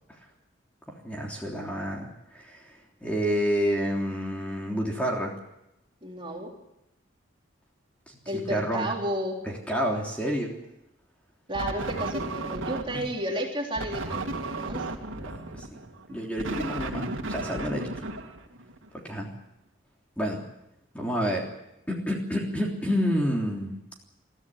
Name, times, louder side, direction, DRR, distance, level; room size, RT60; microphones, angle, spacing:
voice 1, 1.0-2.6 3.0-5.3 8.3-8.9 9.4-10.5 15.2-15.8 16.1-17.9 19.0-19.3 20.2-20.4 20.9-21.4 21.9-23.8, equal, 5° left, -1 dB, 3.4 m, -29 dB
voice 2, 6.0-6.5 8.3-9.4 11.5-14.3 14.7-14.8, right 1 dB, 25° right, 0 dB, 3.6 m, -32 dB
sound 1, 11.5-13.2 13.8-18.9, right 2 dB, 85° right, 2.4 m, -34 dB
22.5 x 14.5 x 9.8 m, 0.87 s
head